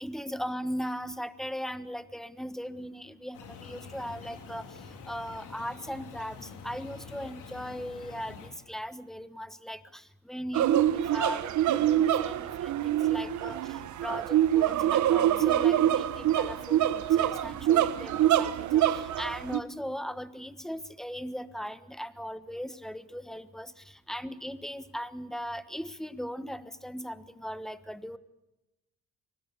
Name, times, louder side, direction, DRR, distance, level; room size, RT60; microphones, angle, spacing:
voice 1, 0.0-28.2, equal, ahead, 14 dB, 1.3 m, -38 dB
sound 1, 3.3-8.5, left 5 dB, 90° left, 4.0 m, -46 dB
sound 2, 10.5-19.6, right 12 dB, 70° right, 1.2 m, -25 dB
24.0 x 18.5 x 8.4 m, 0.94 s
cardioid pair, 90°, 30 cm